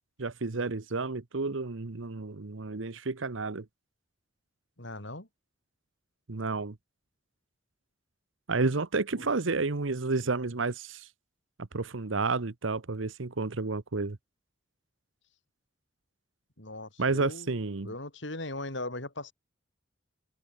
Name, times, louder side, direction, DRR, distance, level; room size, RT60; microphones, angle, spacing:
voice 1, 0.2-3.7 6.3-6.8 8.5-11.1 11.6-14.2 17.0-17.9, right 3 dB, 80° right, 1.0 m, -31 dB
voice 2, 4.8-5.3 9.2-9.3 16.6-17.5 17.8-19.3, left 2 dB, 65° left, 6.0 m, -39 dB
head